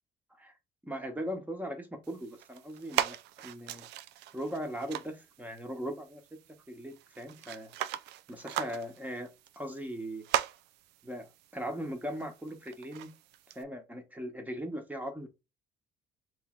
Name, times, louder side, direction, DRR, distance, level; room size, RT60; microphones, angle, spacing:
voice 1, 0.8-3.9 4.3-6.2 6.7-7.7 8.3-9.3 9.6-10.2 11.0-13.1 13.5-15.3, equal, 10° right, 1.1 m, -39 dB
sound 1, 2.0-13.6, right 13 dB, 85° right, 0.4 m, -39 dB
3.8 x 3.1 x 3.7 m
cardioid pair, 110°, 17 cm